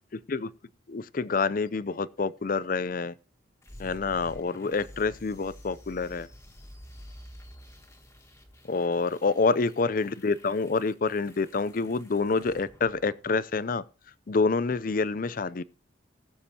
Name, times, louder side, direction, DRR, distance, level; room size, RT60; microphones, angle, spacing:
voice 1, 0.1-0.5 0.9-3.2 3.8-6.3 8.7-13.8 14.3-15.6, left 4 dB, 45° left, 0.5 m, -27 dB
sound 1, 3.6-13.6, equal, 15° left, 1.5 m, -50 dB
20.0 x 7.1 x 2.8 m
head